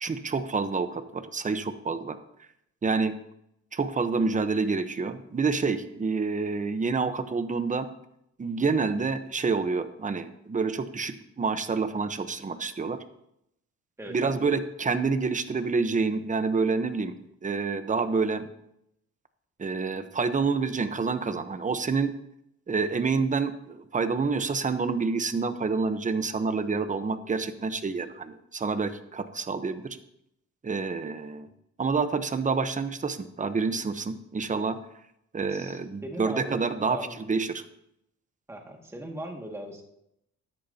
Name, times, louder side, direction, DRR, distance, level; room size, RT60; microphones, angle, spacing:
voice 1, 0.0-2.2 2.8-3.1 3.7-7.9 8.4-13.0 14.1-17.1 17.4-18.5 19.6-22.1 22.7-30.0 30.6-31.5 31.8-34.8 35.3-37.0 37.3-37.6, right 4 dB, 25° right, 10 dB, 1.0 m, -28 dB
voice 2, 14.0-14.4 35.5-37.2 38.5-39.9, equal, 10° right, 1 dB, 2.1 m, -39 dB
13.5 x 10.5 x 2.9 m, 0.79 s
cardioid pair, 90°, 30 cm